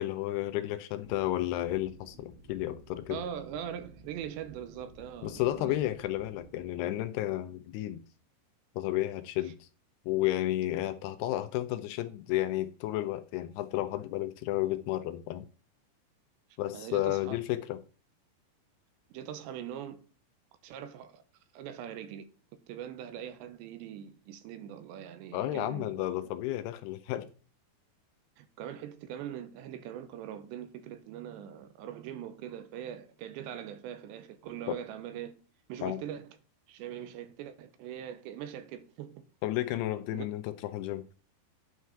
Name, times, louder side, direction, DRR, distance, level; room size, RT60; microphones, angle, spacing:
voice 1, 0.0-3.2 5.2-8.0 8.8-9.7 10.1-15.5 16.6-17.8 25.3-27.3 34.7-34.8 35.8-36.0 39.4-41.0, left 14 dB, 80° left, 2.4 m, -32 dB
sound 1, 1.0-6.6, right 2 dB, 60° right, 3.5 m, -55 dB
voice 2, 3.1-5.8 9.4-9.5 16.7-17.4 19.1-20.0 20.6-21.2 21.5-22.3 22.7-25.9 28.4-35.4 35.7-36.3 36.7-39.3 40.1-40.3, right 10 dB, 85° right, 3.1 m, -42 dB
9.4 x 4.8 x 5.6 m
omnidirectional pair, 5.1 m